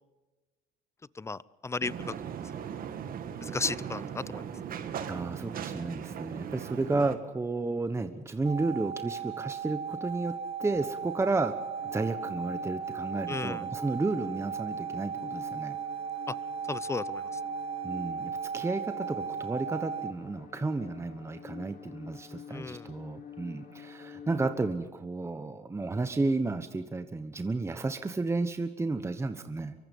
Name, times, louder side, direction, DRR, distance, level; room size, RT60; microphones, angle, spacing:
voice 1, 1.2-2.1 3.4-4.4 13.3-13.6 16.3-16.4 16.7-17.3 22.5-22.9, left 3 dB, 15° left, 20 dB, 0.6 m, -34 dB
sound 1, 1.8-7.2, right 8 dB, 60° right, 2.0 m, -38 dB
voice 2, 5.1-11.5 11.9-15.8 17.8-29.7, right 3 dB, 15° right, 9 dB, 1.1 m, -32 dB
sound 2, 8.4-20.1, right 6 dB, 35° right, 1.2 m, -36 dB
sound 3, 11.8-24.7, left 7 dB, 55° left, 3.6 m, -48 dB
25.0 x 24.0 x 5.4 m, 1.2 s
cardioid pair, 110°, 17 cm